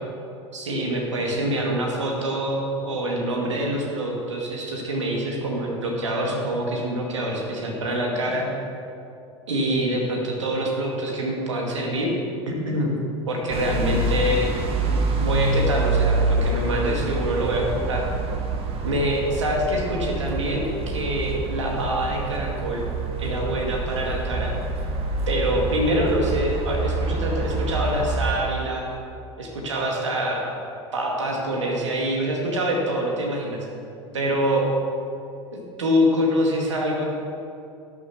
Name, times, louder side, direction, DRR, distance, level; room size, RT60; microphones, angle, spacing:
voice 1, 0.5-8.5 9.5-12.1 12.5-12.9 13.3-14.5 15.0-18.0 18.8-22.9 23.2-24.5 25.3-28.8 29.4-30.5 30.9-33.7 34.1-34.7 35.5-37.0, right 1 dB, 85° right, 0 dB, 2.2 m, -25 dB
sound 1, 13.5-28.4, right 2 dB, 40° right, 1.7 m, -26 dB
12.0 x 6.9 x 6.2 m, 2.6 s
hypercardioid pair, 85°, 15 cm